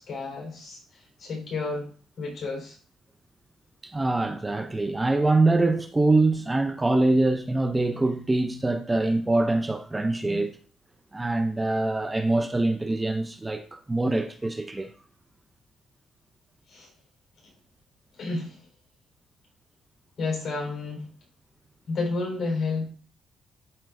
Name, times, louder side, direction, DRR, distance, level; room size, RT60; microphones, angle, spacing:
voice 1, 0.0-1.9 2.2-2.8 10.2-10.4 16.7-16.9 18.2-18.6 20.2-21.1 21.9-22.9, left 3 dB, 50° left, 4.1 m, -31 dB
voice 2, 3.8-10.5 11.1-14.9, right 2 dB, 15° right, 0.6 m, -24 dB
12.0 x 4.4 x 2.6 m
cardioid pair, 90°, 0 cm